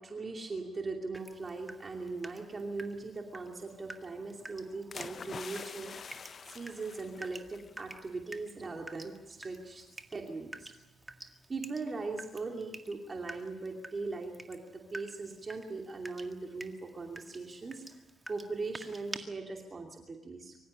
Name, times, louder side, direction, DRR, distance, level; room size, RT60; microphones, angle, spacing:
voice 1, 0.0-5.9 6.5-9.8 10.1-10.7 11.5-17.8 18.3-20.6, right 3 dB, 30° right, 2 dB, 2.7 m, -40 dB
Water tap faucet / Drip, 1.1-19.2, right 2 dB, 15° right, 1.9 m, -50 dB
sound 1, 4.9-7.9 8.3-8.5, left 6 dB, 45° left, 0.7 m, -46 dB
24.5 x 15.5 x 9.8 m, 1.0 s
cardioid pair, 90°, 0 cm